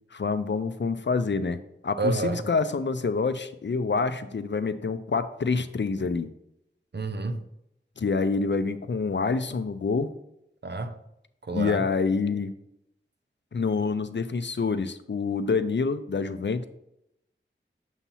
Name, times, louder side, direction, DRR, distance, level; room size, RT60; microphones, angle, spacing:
voice 1, 0.1-1.6 1.8-6.3 8.0-10.1 11.5-12.5 13.5-16.7, left 4 dB, 65° left, 0.5 m, -27 dB
voice 2, 2.0-2.4 6.9-7.4 10.6-11.0 11.5-11.8, right 3 dB, 55° right, 0.6 m, -29 dB
7.1 x 2.8 x 5.5 m
wide cardioid pair, 40°, 20 cm